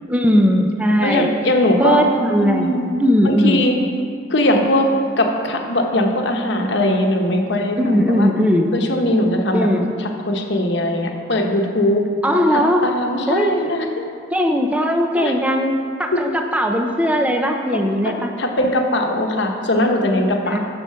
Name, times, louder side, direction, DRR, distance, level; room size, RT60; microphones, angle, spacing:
voice 1, 0.1-1.3 1.8-3.6 7.8-8.7 9.5-9.9 12.2-12.9 13.3-13.7 14.3-15.7 16.0-18.3 20.5-20.6, equal, 5° right, 3 dB, 0.6 m, -18 dB
voice 2, 1.0-2.0 2.4-2.9 3.2-3.7 4.3-4.9 5.2-8.3 8.7-9.7 10.3-12.0 12.5-14.0 15.2-15.3 16.1-16.3 18.0-18.1 18.4-20.6, left 1 dB, 65° left, 2 dB, 1.0 m, -20 dB
9.5 x 6.9 x 5.7 m, 2.3 s
head